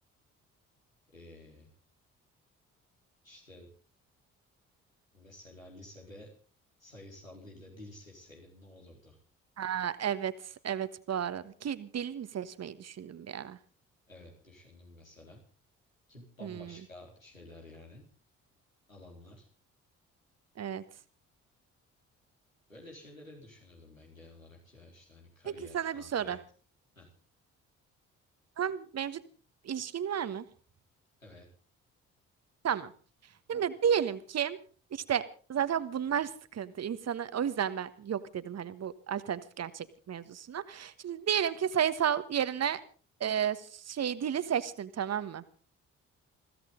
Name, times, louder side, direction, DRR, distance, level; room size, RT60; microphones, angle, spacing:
voice 1, 1.1-1.7 3.2-3.7 5.1-6.3 6.8-9.2 14.1-15.4 16.1-18.0 18.9-19.5 22.7-26.4 27.0-27.1 31.2-31.5, left 1 dB, 90° left, -1 dB, 4.1 m, -52 dB
voice 2, 9.6-10.3 10.6-13.6 16.4-16.7 20.6-20.8 25.7-26.4 28.6-29.2 29.6-30.4 32.6-32.9 33.5-34.6 34.9-35.2 35.5-42.8 43.2-45.4, right 8 dB, 40° right, 14 dB, 1.5 m, -32 dB
21.5 x 16.0 x 3.9 m, 0.39 s
figure-of-eight pair, 45°, 39 cm